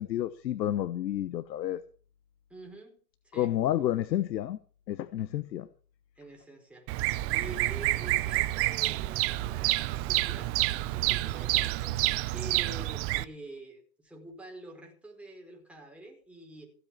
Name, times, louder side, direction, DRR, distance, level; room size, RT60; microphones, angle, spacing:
voice 1, 0.0-1.8 3.3-4.6 4.9-5.7, left 12 dB, 90° left, 1.1 m, -30 dB
voice 2, 2.5-3.0 3.2-3.5 6.2-16.7, right 2 dB, ahead, 4.6 m, -47 dB
Bird vocalization bird call bird song, 6.9-13.2, right 18 dB, 30° right, 0.6 m, -28 dB
15.5 x 8.3 x 7.2 m
hypercardioid pair, 135°, 49 cm